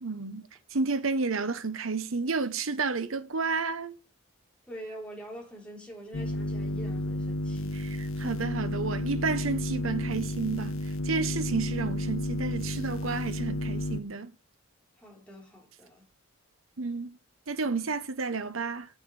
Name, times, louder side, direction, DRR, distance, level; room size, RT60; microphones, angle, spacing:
voice 1, 0.0-4.0 7.7-14.3 16.8-17.2 17.5-18.9, right 4 dB, 75° right, 1.1 m, -31 dB
voice 2, 4.7-7.8 15.0-16.1, right 1 dB, 5° left, 3.6 m, -44 dB
sound 1, 6.1-14.0, left 1 dB, 85° left, 1.0 m, -32 dB
7.3 x 7.2 x 7.0 m
head